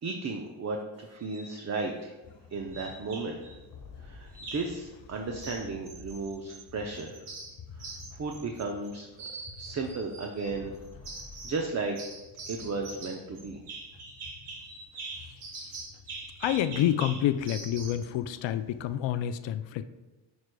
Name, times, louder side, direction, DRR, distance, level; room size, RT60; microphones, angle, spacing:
voice 1, 0.0-2.1 2.5-3.4 4.0-7.3 7.7-7.9 8.1-9.1 9.6-10.7 11.4-12.0 12.5-13.6, right 3 dB, 35° right, 2 dB, 0.6 m, -34 dB
sound 1, 1.2-1.5 2.7-3.5 4.3-4.8 5.4-6.6 6.9-8.9 9.2-10.5 11.0-11.7 12.0-18.1, right 3 dB, 75° right, 1.7 m, -43 dB
sound 2, 2.2-18.9, left 4 dB, 40° left, 1.2 m, -51 dB
voice 2, 16.4-19.8, left 11 dB, 65° left, 13 dB, 0.5 m, -28 dB
9.4 x 4.7 x 2.3 m, 1.1 s
supercardioid pair, 70°, 50 cm